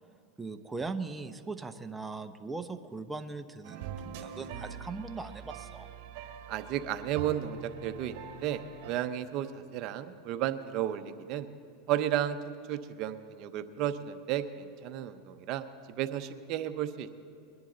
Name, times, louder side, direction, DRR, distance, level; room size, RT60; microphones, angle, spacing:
voice 1, 0.4-5.9, right 3 dB, 10° right, 7 dB, 0.7 m, -39 dB
sound 1, 3.6-8.9, right 7 dB, 65° right, 1.4 m, -43 dB
voice 2, 6.5-11.5 11.9-12.4 12.7-17.1, right 11 dB, 50° right, 9 dB, 0.8 m, -33 dB
21.5 x 11.0 x 4.0 m, 2.5 s
supercardioid pair, 120°, 0 cm